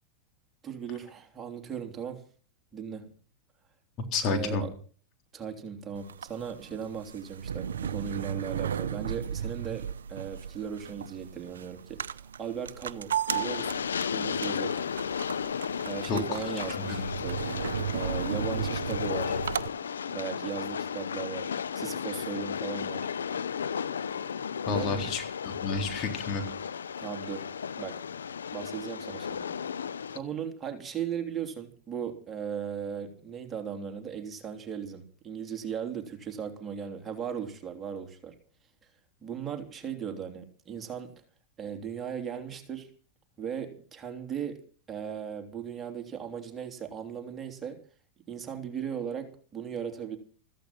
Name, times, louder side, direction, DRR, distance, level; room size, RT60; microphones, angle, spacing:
voice 1, 0.6-2.2 2.7-3.1 4.3-4.7 5.3-13.8 14.1-14.8 15.8-17.4 17.9-19.4 20.1-23.1 24.7-25.1 27.0-27.5 27.8-28.0 28.5-29.5 30.1-38.3 39.2-41.1 41.6-42.9 43.4-44.6 44.9-47.8 48.3-50.2, right 7 dB, 25° right, 4 dB, 3.1 m, -37 dB
voice 2, 4.1-4.6 16.1-16.4 16.8-17.2 24.7-26.4, left 4 dB, 45° left, 5 dB, 3.8 m, -30 dB
sound 1, 5.9-19.7, right 9 dB, 85° right, 0.7 m, -35 dB
Train, 13.3-30.2, left 7 dB, 90° left, 0.7 m, -34 dB
15.0 x 15.0 x 5.9 m, 0.43 s
hypercardioid pair, 105°, 0 cm